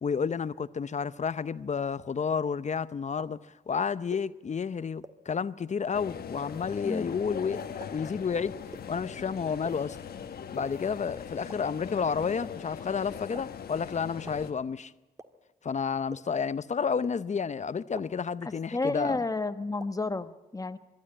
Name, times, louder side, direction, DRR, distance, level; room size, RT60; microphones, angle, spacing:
voice 1, 0.0-7.6 7.9-8.6 8.9-10.0 10.5-14.9 15.6-19.2, left 6 dB, 50° left, 0.7 m, -31 dB
sound 1, 3.2-3.3 4.1-4.2 5.0-5.1 6.0-6.1 6.9-7.0 7.8-7.9 8.7-8.8 9.6-9.7 10.6-10.7 11.5-11.6 12.4-12.5 13.3-13.4 14.3-14.4 15.2-15.3 16.1-16.2 17.0-17.1 17.9-18.0 18.9-19.0 19.8-19.9, right 2 dB, 20° right, 1.6 m, -42 dB
sound 2, 5.9-14.5, left 7 dB, 85° left, 1.2 m, -41 dB
voice 2, 18.4-20.8, left 3 dB, 20° left, 1.1 m, -31 dB
22.0 x 13.0 x 9.7 m
cardioid pair, 60°, 16 cm